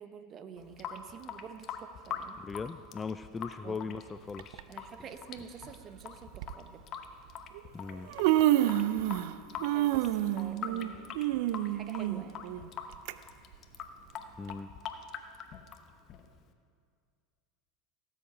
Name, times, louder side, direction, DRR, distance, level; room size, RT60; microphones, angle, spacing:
voice 1, 0.0-2.4 3.6-4.0 4.7-6.8 9.7-12.4, right 7 dB, 40° right, 10 dB, 0.9 m, -48 dB
Water tap faucet / Sink (filling or washing) / Drip, 0.6-16.5, left 7 dB, 45° left, 0.9 m, -44 dB
voice 2, 2.4-4.7 7.7-8.1 14.4-14.7, left 5 dB, 20° left, 13 dB, 0.3 m, -39 dB
Human voice, 4.4-4.6 5.6-5.7 6.3-6.5 7.5-7.6 7.9-9.3 9.6-13.1 13.5-13.6 14.5-14.6, right 14 dB, 65° right, 0.4 m, -28 dB
17.5 x 8.0 x 5.0 m, 2.2 s
hypercardioid pair, 85°, 0 cm